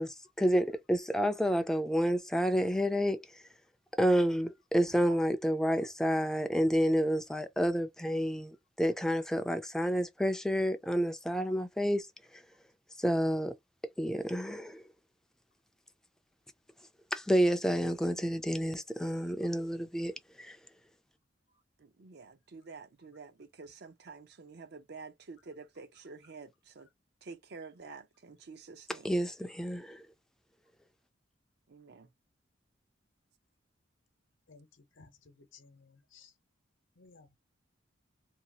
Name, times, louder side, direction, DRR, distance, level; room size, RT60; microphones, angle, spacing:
voice 1, 0.0-3.2 4.0-12.1 12.3-12.4 13.0-13.5 14.0-14.8 17.1-20.1 20.4-20.6 29.0-30.0, equal, 5° left, 0.3 m, -29 dB
voice 2, 21.8-26.9 27.2-29.1 31.7-32.1, right 4 dB, 60° right, 0.6 m, -49 dB
voice 3, 35.0-36.3 37.0-37.4, left 4 dB, 85° left, 0.8 m, -58 dB
2.8 x 2.3 x 2.8 m
head